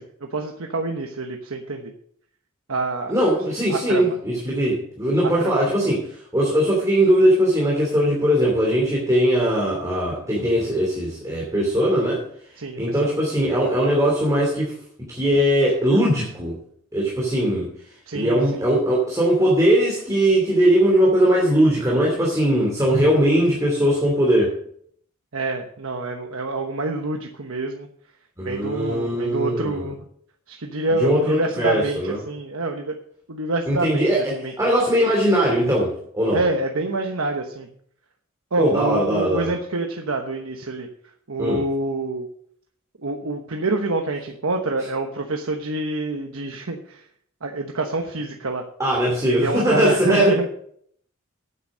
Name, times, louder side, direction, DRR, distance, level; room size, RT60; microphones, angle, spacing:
voice 1, 0.3-1.9 2.7-3.2 3.7-4.2 5.2-5.7 12.6-13.2 18.1-18.6 25.3-27.9 28.4-30.1 30.5-33.0 33.3-34.5 36.3-37.7 38.5-40.9 41.3-42.3 43.0-47.1 47.4-48.7 49.3-50.5, right 2 dB, 85° right, 3 dB, 1.1 m, -27 dB
voice 2, 3.1-6.0 6.3-12.2 12.8-14.7 15.1-16.6 16.9-17.7 18.1-24.5 28.4-29.8 30.9-32.2 33.7-36.4 38.6-39.5 41.4-41.6 48.8-50.5, equal, 15° right, -3 dB, 2.9 m, -20 dB
9.2 x 9.1 x 6.3 m, 0.65 s
head